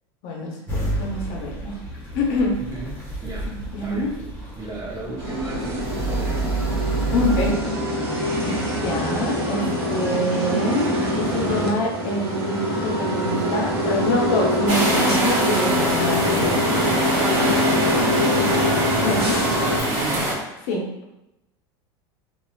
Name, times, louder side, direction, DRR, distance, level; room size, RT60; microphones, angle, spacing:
voice 1, 0.2-1.8 2.1-2.6 3.4-4.1 7.1-7.6 8.4-16.8 19.0-19.4 20.7-20.9, left 1 dB, 65° left, 0 dB, 0.7 m, -26 dB
sound 1, 0.7-7.5, right 3 dB, 15° left, 1.3 m, -29 dB
voice 2, 2.6-4.1 4.5-6.4 19.4-20.3, right 2 dB, 25° right, -4 dB, 1.0 m, -35 dB
sound 2, 5.2-19.8, equal, 85° right, 0.8 m, -24 dB
sound 3, 14.7-20.3, right 1 dB, 50° right, 1.4 m, -24 dB
3.0 x 2.3 x 2.3 m, 0.91 s
hypercardioid pair, 100°, 13 cm